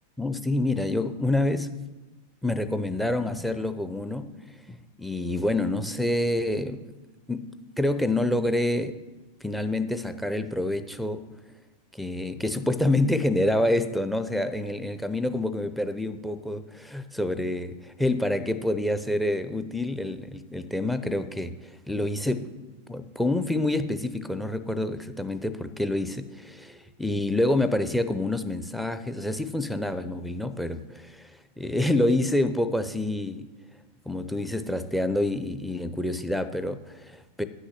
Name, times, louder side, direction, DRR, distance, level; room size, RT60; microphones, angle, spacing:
voice 1, 0.2-1.7 2.4-4.3 4.7-6.9 7.3-9.0 9.4-11.3 11.9-22.5 22.9-33.5 34.1-37.4, left 1 dB, ahead, 13 dB, 0.6 m, -27 dB
9.4 x 6.4 x 7.2 m, 1.1 s
figure-of-eight pair, 90°, 0 cm